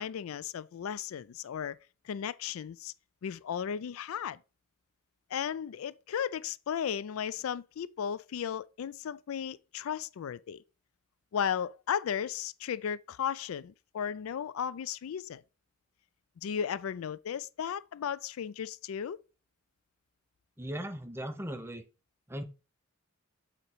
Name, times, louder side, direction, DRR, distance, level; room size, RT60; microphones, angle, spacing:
voice 1, 0.0-1.8 2.1-2.9 3.2-4.4 5.3-10.6 11.3-15.4 16.4-19.2, left 8 dB, 85° left, 0.4 m, -35 dB
voice 2, 20.6-21.8 22.3-22.4, equal, 10° right, 0.6 m, -38 dB
7.9 x 3.0 x 4.5 m
head